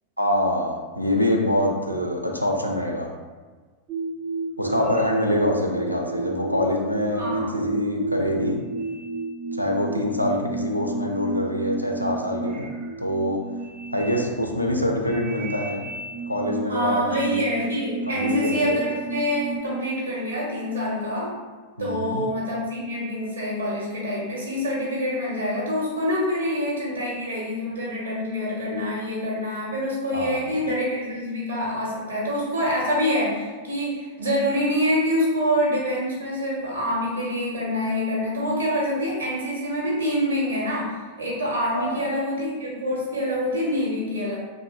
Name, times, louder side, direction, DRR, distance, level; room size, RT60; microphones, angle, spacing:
voice 1, 0.2-3.1 4.6-8.6 9.5-12.7 13.0-13.4 13.9-15.8 16.3-17.5 18.1-18.8 21.8-22.2 30.1-30.4 41.7-42.0, left 1 dB, 90° left, 1 dB, 0.3 m, -25 dB
sound 1, 3.9-19.6, right 3 dB, 25° right, 0.3 m, -32 dB
voice 2, 7.2-7.6 16.7-21.4 21.8-44.4, equal, 75° right, -5 dB, 0.9 m, -26 dB
2.9 x 2.0 x 3.0 m, 1.4 s
figure-of-eight pair, 90°, 0 cm